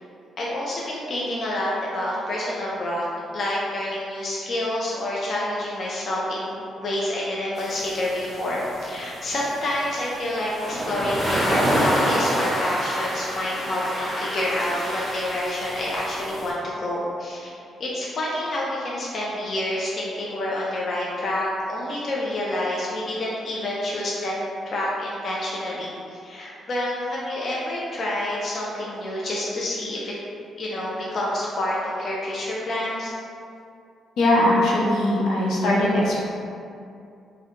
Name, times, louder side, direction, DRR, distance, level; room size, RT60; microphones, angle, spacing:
voice 1, 0.4-3.1 3.3-17.5 17.8-24.3 24.6-30.1 30.6-33.1, left 1 dB, 35° left, -5 dB, 0.4 m, -28 dB
sound 1, 7.6-16.5, equal, 5° right, 0.7 m, -27 dB
voice 2, 34.2-36.2, left 1 dB, 80° left, -6 dB, 0.7 m, -20 dB
3.8 x 2.1 x 2.8 m, 2.5 s
cardioid pair, 170°, 0 cm